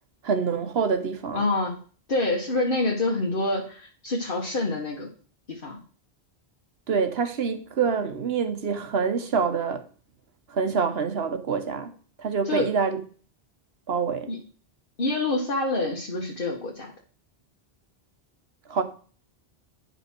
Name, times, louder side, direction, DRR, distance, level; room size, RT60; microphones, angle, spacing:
voice 1, 0.2-1.4 6.9-9.8 10.5-11.9 12.2-13.0 13.9-14.3 18.7-18.8, right 5 dB, 70° right, 1.2 m, -26 dB
voice 2, 1.3-1.8 2.1-5.1 5.5-5.8 12.4-12.7 14.3-14.4 15.0-16.9, left 2 dB, 55° left, 1.5 m, -26 dB
9.4 x 5.4 x 4.5 m
omnidirectional pair, 1.1 m